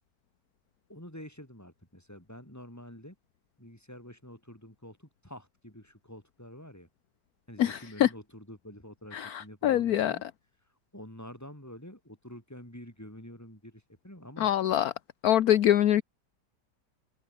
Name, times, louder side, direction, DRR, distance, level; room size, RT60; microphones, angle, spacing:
voice 1, 0.9-3.2 3.6-6.9 7.5-10.2 10.6-14.5, equal, 10° left, 6.4 m, -47 dB
voice 2, 7.6-8.1 9.1-10.2 14.4-14.9 15.2-16.0, left 11 dB, 65° left, 1.2 m, -24 dB
open air
omnidirectional pair, 1.8 m